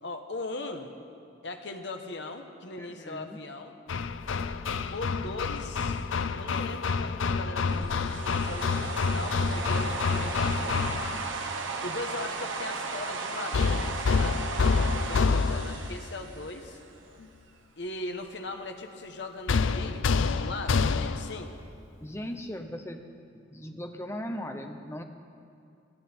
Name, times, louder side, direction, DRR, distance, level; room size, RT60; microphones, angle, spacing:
voice 1, 0.0-0.9 1.4-3.7 4.9-6.0 6.4-11.1 11.8-14.5 15.0-16.8 17.8-21.5, left 2 dB, 65° left, 5 dB, 1.2 m, -39 dB
voice 2, 2.8-3.4 22.0-23.0 23.3-25.0, equal, 15° left, 5 dB, 0.8 m, -38 dB
Hammer, 3.9-11.3 13.5-15.9 19.5-21.4, left 4 dB, 85° left, 0.5 m, -28 dB
sound 1, 7.7-16.9, right 4 dB, 90° right, 1.1 m, -36 dB
19.0 x 13.5 x 4.4 m, 2.4 s
head